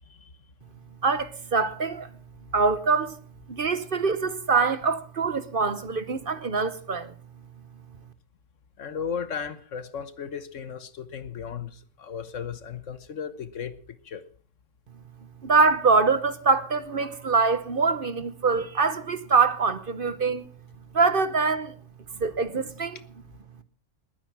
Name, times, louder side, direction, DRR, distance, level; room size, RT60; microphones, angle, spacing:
voice 1, 1.0-2.1 2.5-3.2 3.5-7.1 15.4-20.5 20.9-21.7 22.2-23.0, right 4 dB, 45° right, 1.1 m, -24 dB
voice 2, 8.8-13.8 14.0-14.2, left 7 dB, 70° left, 1.5 m, -35 dB
20.5 x 9.5 x 6.1 m
omnidirectional pair, 1.3 m